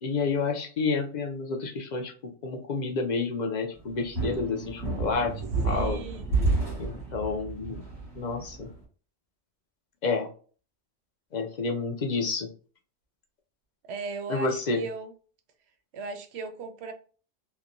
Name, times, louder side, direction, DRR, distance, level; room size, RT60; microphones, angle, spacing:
voice 1, 0.0-2.1 2.4-5.3 5.6-6.0 6.8-7.8 8.2-8.7 10.0-10.3 11.3-12.5 14.3-14.8, left 4 dB, 55° left, 3 dB, 0.5 m, -29 dB
sound 1, 3.8-8.8, right 3 dB, ahead, 1.0 m, -30 dB
voice 2, 5.6-6.3 13.9-15.1 15.9-16.9, right 4 dB, 65° right, 7 dB, 0.8 m, -37 dB
2.9 x 2.1 x 2.5 m, 0.40 s
omnidirectional pair, 1.2 m